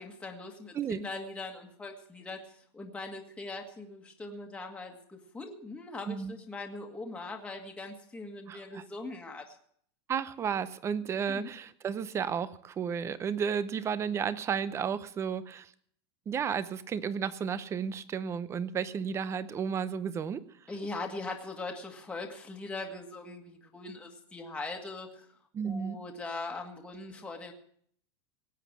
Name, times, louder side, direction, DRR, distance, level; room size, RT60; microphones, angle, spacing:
voice 1, 0.0-2.4 2.7-9.6 11.3-11.5 20.7-25.3 25.6-27.5, left 3 dB, 10° left, 1 dB, 1.7 m, -41 dB
voice 2, 8.5-8.8 10.1-15.7 16.3-20.5 25.5-26.0, right 7 dB, 20° right, 16 dB, 0.7 m, -33 dB
18.0 x 8.2 x 7.3 m, 0.62 s
supercardioid pair, 150°, 14 cm